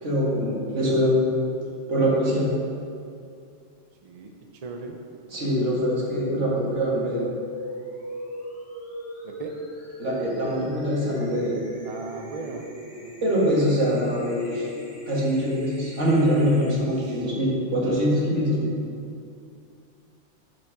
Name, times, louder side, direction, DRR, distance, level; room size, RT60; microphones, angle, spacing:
voice 1, 0.0-1.2 1.9-2.5 5.3-7.2 10.0-11.6 13.2-14.7 15.1-18.7, equal, 75° right, -5 dB, 2.2 m, -23 dB
voice 2, 0.7-1.1 4.0-4.3 4.6-5.0 9.2-9.5 11.8-12.6 12.9-13.1 16.7-17.3, right 4 dB, 40° right, 2 dB, 0.6 m, -38 dB
sound 1, 6.8-16.8, equal, 10° left, 1.6 m, -39 dB
7.2 x 5.7 x 5.9 m, 2.4 s
omnidirectional pair, 1.2 m